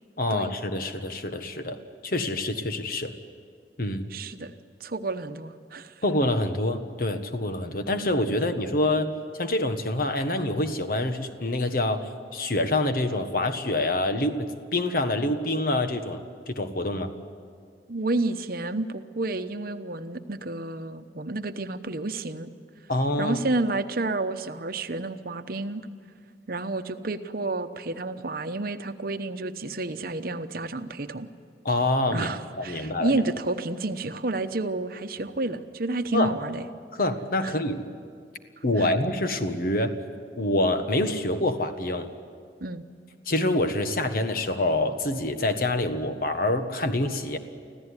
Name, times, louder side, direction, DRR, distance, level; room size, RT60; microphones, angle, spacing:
voice 1, 0.2-3.1 3.8-4.1 6.0-9.1 9.4-17.1 22.9-23.4 31.6-32.3 32.6-33.2 36.1-36.3 36.9-37.8 38.6-39.9 40.4-42.1 43.3-47.4, left 1 dB, 55° left, 8 dB, 1.4 m, -26 dB
voice 2, 4.1-4.5 4.8-5.9 17.9-22.5 23.2-25.9 26.5-31.3 32.1-36.7 37.4-37.5 38.8-38.9 42.6-42.8, right 2 dB, 55° right, 9 dB, 1.0 m, -30 dB
25.5 x 15.5 x 9.8 m, 2.1 s
head